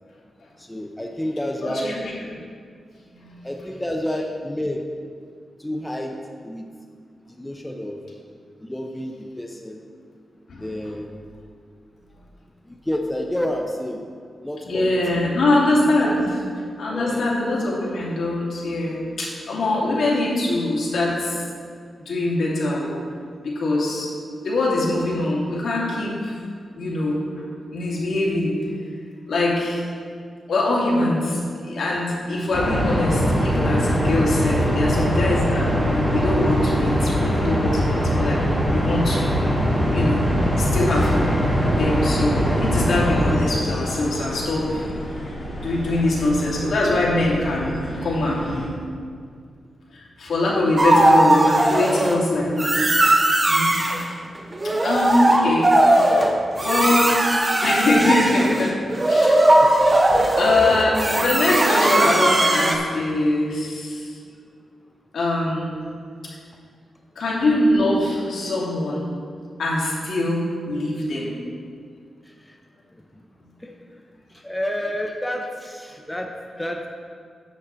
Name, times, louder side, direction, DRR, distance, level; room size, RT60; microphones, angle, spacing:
voice 1, 0.6-2.0 3.4-4.9 5.6-6.2 6.4-6.7 7.2-8.0 8.6-9.8 10.6-11.1 12.7-14.0 14.4-15.2 16.0-16.2 16.9-17.3 19.9-20.1 55.4-55.7 56.0-56.3 58.9-59.0 59.6-59.8 72.2-72.6 72.9-73.2 73.6-73.7 74.3-76.9, left 1 dB, 10° left, 2 dB, 0.6 m, -30 dB
voice 2, 1.6-2.1 3.1-3.4 10.5-10.7 14.7-16.3 16.8-21.4 22.1-22.9 23.4-24.1 24.4-26.3 26.8-27.2 27.7-28.6 29.3-29.8 30.5-39.3 39.9-40.2 40.6-44.8 45.6-48.9 49.9-53.0 53.5-53.7 54.8-55.7 56.6-57.1 57.6-58.7 59.0-59.7 60.4-64.1 65.1-65.8 67.2-69.1 69.6-71.3, left 2 dB, 75° left, -5 dB, 2.4 m, -23 dB
sound 1, 32.5-43.4, equal, 10° right, 2.4 m, -21 dB
sound 2, 35.0-48.7, equal, 40° left, 2.4 m, -34 dB
sound 3, 50.8-52.2 52.6-54.0 54.5-62.7, right 1 dB, 25° right, 0.8 m, -18 dB
9.9 x 4.1 x 7.4 m, 2.1 s
wide cardioid pair, 120°, 0 cm